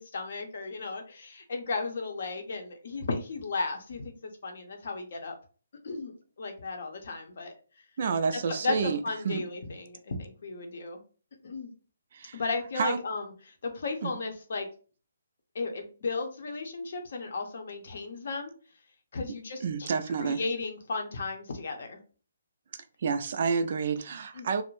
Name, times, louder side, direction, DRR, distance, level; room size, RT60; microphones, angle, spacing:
voice 1, 0.0-5.3 5.8-6.1 6.4-7.5 8.6-11.0 11.4-11.7 12.3-13.3 13.6-14.7 15.5-18.5 19.1-19.9 20.2-22.0 24.4-24.5, left 3 dB, 55° left, 0.6 m, -35 dB
voice 2, 8.0-9.0 9.2-9.4 12.1-12.4 12.8-13.0 14.0-14.1 19.6-20.4 22.7-24.6, right 5 dB, 45° right, 0.3 m, -29 dB
2.4 x 2.0 x 3.0 m
hypercardioid pair, 165°, 0 cm